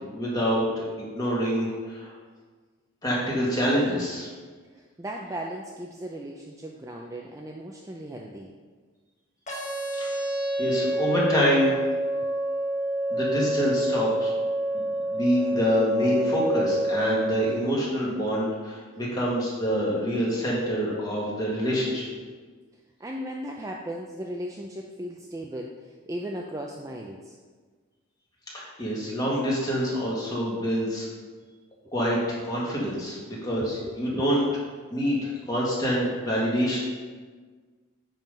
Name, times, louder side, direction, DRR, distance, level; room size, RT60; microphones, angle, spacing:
voice 1, 0.1-2.1 3.0-4.3 10.0-10.2 10.6-11.8 13.1-14.3 14.7-14.8 15.1-22.1 28.5-31.1 31.9-32.2 32.4-34.4 34.9-36.8, equal, 20° left, -5 dB, 1.7 m, -26 dB
voice 2, 4.7-8.5 23.0-27.4 33.8-34.3, right 1 dB, 15° right, 0 dB, 0.4 m, -37 dB
sound 1, 9.5-17.5, right 1 dB, 35° left, 1.5 m, -27 dB
9.0 x 3.8 x 5.2 m, 1.5 s
head